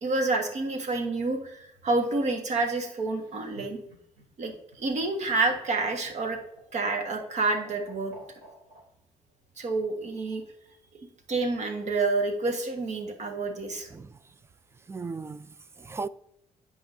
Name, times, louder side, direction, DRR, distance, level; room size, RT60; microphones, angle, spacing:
voice 1, 0.0-3.8 4.4-6.4 6.7-8.1 9.6-10.4 11.3-13.9, right 3 dB, 55° right, 1.4 m, -28 dB
Laughter, 3.1-8.8 10.1-10.8, right 2 dB, 80° right, 2.8 m, -49 dB
voice 2, 14.9-16.1, right 4 dB, 20° right, 0.4 m, -37 dB
11.5 x 4.9 x 2.6 m
cardioid pair, 80°, 14 cm